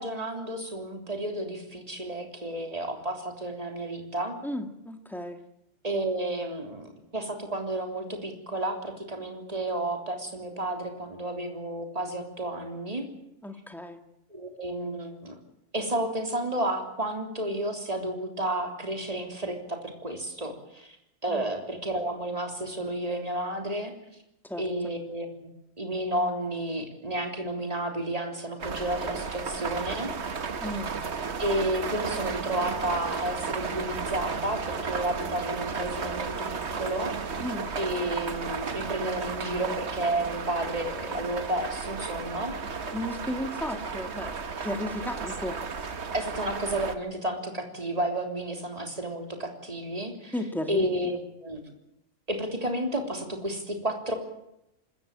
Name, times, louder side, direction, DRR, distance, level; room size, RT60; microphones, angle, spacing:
voice 1, 0.0-4.4 5.8-13.1 14.3-15.4 15.7-21.0 21.2-23.9 24.6-25.5 25.8-30.1 31.4-37.2 37.8-42.6 46.1-50.3 50.7-51.6 52.3-54.1, right 1 dB, 30° right, 4 dB, 3.6 m, -31 dB
voice 2, 4.4-5.4 13.4-14.0 21.3-21.5 24.4-24.9 30.6-30.9 37.4-37.7 42.9-44.4 44.6-45.6 50.3-51.3, left 1 dB, ahead, 6 dB, 2.0 m, -34 dB
sound 1, 28.6-46.9, right 5 dB, 60° right, 1.6 m, -34 dB
25.5 x 14.5 x 8.9 m, 0.83 s
omnidirectional pair, 1.3 m